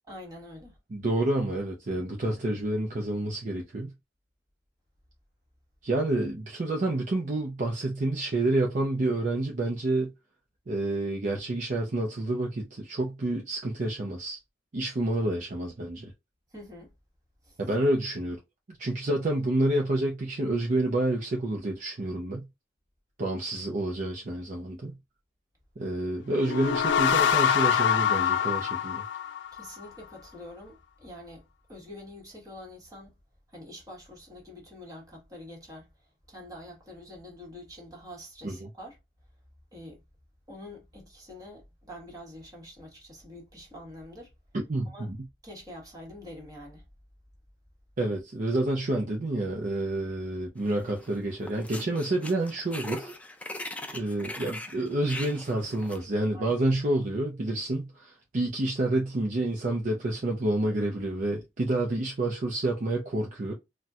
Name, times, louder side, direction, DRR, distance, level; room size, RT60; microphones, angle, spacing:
voice 1, 0.1-0.8 16.5-16.9 17.4-17.6 29.5-33.2 33.5-39.0 39.7-40.0 40.5-44.3 44.9-45.1 45.4-46.8 56.3-56.6, left 1 dB, 20° right, 1.3 m, -46 dB
voice 2, 0.9-3.9 5.8-10.1 10.7-14.4 14.7-16.1 17.6-18.4 18.7-22.5 23.2-25.0 25.8-29.0 38.4-38.7 44.7-45.2 48.0-53.1 53.9-63.5, right 1 dB, 45° right, 0.5 m, -29 dB
sound 1, 26.3-29.8, left 8 dB, 90° left, 0.4 m, -25 dB
sound 2, 50.7-51.1 51.4-56.0, left 1 dB, 10° left, 0.4 m, -40 dB
4.1 x 2.2 x 2.4 m
head